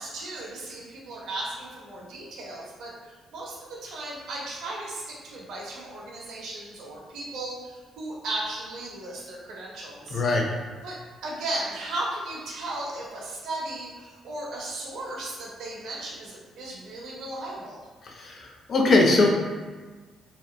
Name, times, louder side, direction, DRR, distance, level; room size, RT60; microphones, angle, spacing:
voice 1, 0.0-10.2 10.8-11.0 11.2-17.8, right 2 dB, 80° right, -4 dB, 0.6 m, -36 dB
voice 2, 10.1-10.5 18.0-19.4, left 2 dB, 50° left, 1 dB, 0.4 m, -21 dB
2.9 x 2.0 x 2.2 m, 1.4 s
cardioid pair, 90°, 0 cm